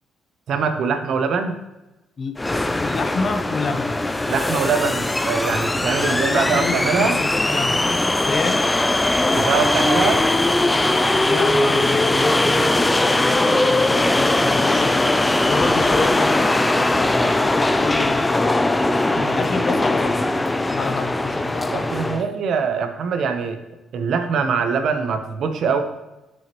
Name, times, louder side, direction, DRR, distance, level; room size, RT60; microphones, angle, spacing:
voice 1, 0.5-1.6 4.3-7.2 9.3-10.2 19.1-19.4 21.7-23.6 23.9-25.8, right 5 dB, 60° right, 7 dB, 0.8 m, -23 dB
voice 2, 2.2-4.0 6.0-7.8 8.2-8.7 11.2-18.7 19.3-22.2, left 4 dB, 35° left, 8 dB, 0.7 m, -28 dB
sound 1, 2.4-22.2, left 2 dB, 10° left, 0.3 m, -20 dB
9.0 x 6.3 x 2.9 m, 1.0 s
cardioid pair, 135°, 0 cm